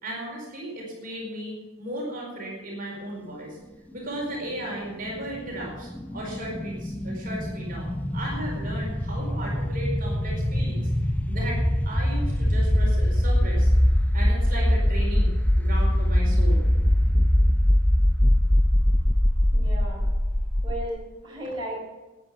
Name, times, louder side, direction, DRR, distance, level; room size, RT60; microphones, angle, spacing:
voice 1, 0.0-3.6 3.9-10.9 11.3-13.7 14.1-16.6, right 1 dB, 40° right, -2 dB, 4.8 m, -35 dB
sound 1, 5.0-20.9, left 1 dB, 5° left, 0.6 m, -22 dB
voice 2, 19.5-20.1 20.6-21.8, right 1 dB, 20° right, -5 dB, 4.6 m, -35 dB
14.0 x 9.7 x 7.6 m, 1.1 s
head